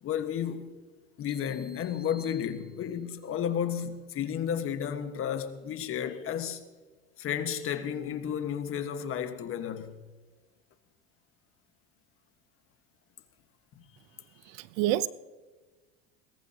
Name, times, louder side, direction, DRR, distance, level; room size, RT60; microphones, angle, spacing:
voice 1, 0.0-0.8 1.2-6.6 7.2-10.0, left 9 dB, 45° left, 1.5 m, -32 dB
sound 1, 1.3-3.2, equal, ahead, 1.1 m, -53 dB
voice 2, 14.4-15.1, right 14 dB, 70° right, 0.7 m, -28 dB
22.5 x 19.0 x 2.9 m
supercardioid pair, 100°, 31 cm